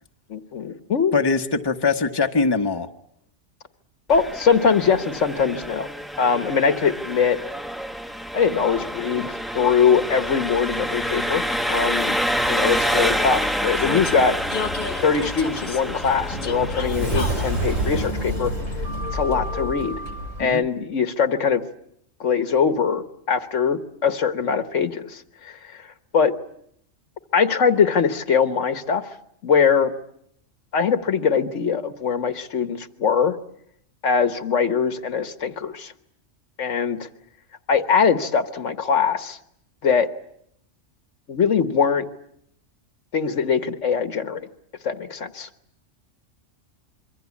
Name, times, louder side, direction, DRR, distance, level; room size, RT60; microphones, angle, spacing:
voice 1, 0.3-1.1 4.1-5.9 6.2-7.4 8.3-12.2 12.5-14.4 15.0-18.5 19.1-20.0 20.4-21.6 22.2-25.6 26.1-26.3 27.3-29.1 29.4-29.9 30.7-33.4 34.0-35.9 36.6-37.1 37.7-39.4 39.8-40.1 41.3-42.1 43.1-44.4 44.8-45.5, left 6 dB, 80° left, 10 dB, 1.6 m, -22 dB
voice 2, 1.1-2.9 20.4-20.6, left 4 dB, 20° left, 5 dB, 1.1 m, -22 dB
Engine, 4.1-18.1, equal, ahead, 0.8 m, -28 dB
Vehicle, 8.3-20.0, left 5 dB, 45° left, 1.4 m, -35 dB
Sliding door, 15.6-20.4, right 1 dB, 85° right, 4.9 m, -28 dB
26.5 x 23.5 x 8.4 m, 0.73 s
omnidirectional pair, 1.3 m